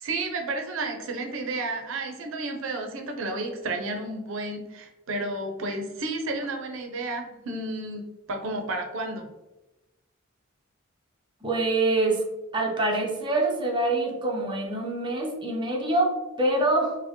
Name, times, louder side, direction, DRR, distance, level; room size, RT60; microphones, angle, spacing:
voice 1, 0.0-9.3, right 2 dB, 65° right, 3 dB, 0.5 m, -32 dB
voice 2, 11.4-12.2 12.5-17.0, right 2 dB, 20° right, 0 dB, 0.6 m, -25 dB
4.3 x 2.1 x 2.9 m, 1.0 s
head